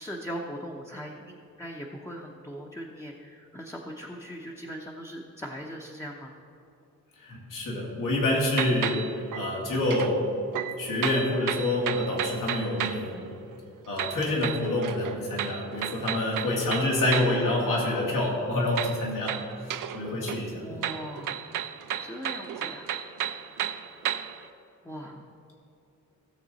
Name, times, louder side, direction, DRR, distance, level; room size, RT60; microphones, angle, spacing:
voice 1, 0.0-6.3 14.0-14.2 20.6-21.5 22.0-22.9 24.8-25.2, equal, 10° left, -1 dB, 0.7 m, -40 dB
voice 2, 7.2-10.3 10.8-13.3 13.9-20.6, left 1 dB, 80° left, -3 dB, 2.6 m, -27 dB
sound 1, 8.5-10.2 10.5-13.1 14.0-17.4 18.8-20.0 20.3-24.4, right 10 dB, 85° right, 0.6 m, -33 dB
16.5 x 7.3 x 4.1 m, 2.8 s
wide cardioid pair, 145°, 31 cm